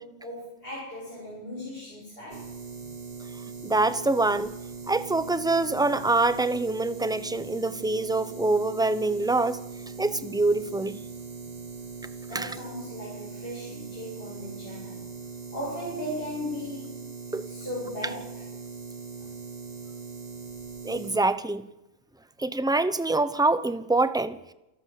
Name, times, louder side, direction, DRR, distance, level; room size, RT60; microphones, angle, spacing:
voice 1, 0.0-2.5 12.3-15.0 15.5-17.1 17.5-18.4, left 1 dB, 40° left, 7.6 m, -37 dB
sound 1, 2.3-21.2, right 4 dB, 30° right, 1.3 m, -40 dB
voice 2, 3.6-4.5 4.9-9.6 10.0-11.0 12.3-12.6 17.3-17.5 20.8-21.6 22.4-24.4, right 2 dB, 5° right, 0.6 m, -25 dB
28.5 x 12.0 x 7.8 m
omnidirectional pair, 1.5 m